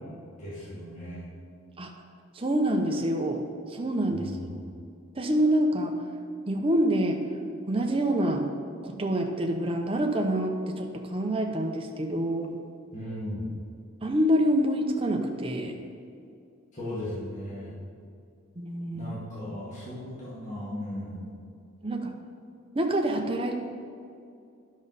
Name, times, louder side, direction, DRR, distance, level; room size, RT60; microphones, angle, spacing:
voice 1, 0.4-1.3 4.2-4.6 12.9-13.6 16.8-17.7 18.9-21.3, left 1 dB, 35° left, -10 dB, 2.0 m, -36 dB
voice 2, 2.3-3.4 3.7-4.3 5.1-6.0 6.5-7.2 7.7-8.5 8.8-12.6 14.0-15.8 18.6-19.1 21.8-22.1 22.7-23.6, right 1 dB, 25° right, 3 dB, 0.7 m, -26 dB
10.5 x 6.2 x 4.1 m, 2.4 s
head